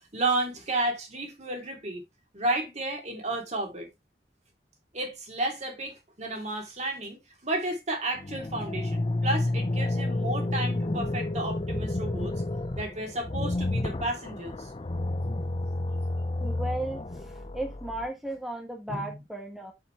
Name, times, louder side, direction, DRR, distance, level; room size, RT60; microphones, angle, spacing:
voice 1, 0.1-2.0 2.3-3.9 4.9-12.4 12.7-14.7 18.9-19.1, right 2 dB, 40° right, 3.0 m, -32 dB
sound 1, 8.2-18.1, left 2 dB, 30° left, 0.6 m, -30 dB
voice 2, 16.4-19.7, right 1 dB, ahead, 1.6 m, -35 dB
7.4 x 7.0 x 3.3 m
head